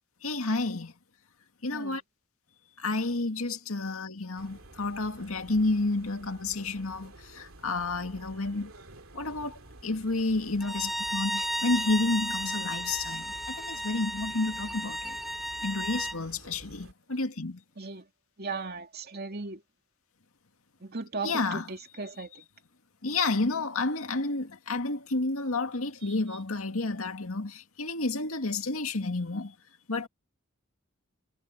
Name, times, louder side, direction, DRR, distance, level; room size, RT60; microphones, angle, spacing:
voice 1, 0.2-0.9 1.6-2.0 2.8-8.7 9.1-15.2 15.6-17.6 21.2-21.7 23.0-29.5 29.9-30.1, left 3 dB, 80° left, 2.2 m, -30 dB
sound 1, 4.4-16.9, right 2 dB, 80° right, 2.5 m, -51 dB
Bowed string instrument, 10.6-16.2, equal, ahead, 1.3 m, -34 dB
voice 2, 18.4-19.6 20.8-22.3, right 4 dB, 50° right, 2.6 m, -37 dB
head